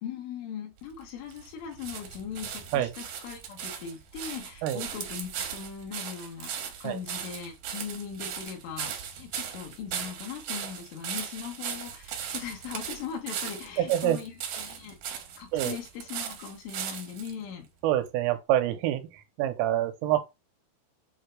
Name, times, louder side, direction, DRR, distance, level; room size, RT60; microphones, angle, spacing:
voice 1, 0.0-15.0 15.4-17.7, left 7 dB, 75° left, 4.0 m, -39 dB
sound 1, 0.8-17.3 18.1-18.2, right 8 dB, 70° right, 2.4 m, -38 dB
voice 2, 13.8-14.2 15.5-15.8 17.8-20.2, right 12 dB, 85° right, 3.4 m, -26 dB
8.3 x 2.9 x 4.6 m
omnidirectional pair, 5.8 m